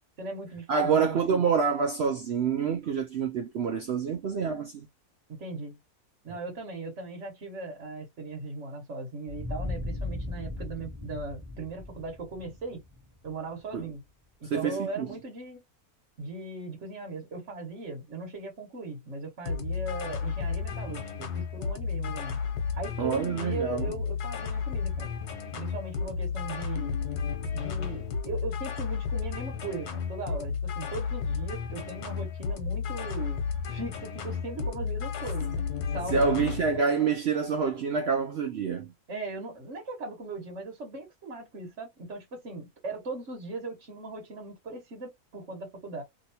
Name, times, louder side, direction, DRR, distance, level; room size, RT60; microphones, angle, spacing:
voice 1, 0.2-1.4 5.3-5.8 6.2-12.8 13.2-14.0 14.4-15.6 16.2-22.4 22.8-25.1 25.6-27.0 27.5-33.4 33.7-35.6 35.9-36.4 39.1-46.0, right 3 dB, 50° right, 1.5 m, -38 dB
voice 2, 0.7-4.9 13.7-13.8 14.4-15.1 23.0-23.9 36.1-38.9, right 6 dB, 70° right, 0.6 m, -27 dB
sound 1, 9.3-13.9, left 2 dB, 15° right, 1.1 m, -37 dB
sound 2, 19.5-36.8, left 6 dB, 85° left, 1.4 m, -33 dB
3.0 x 2.9 x 2.7 m
omnidirectional pair, 1.6 m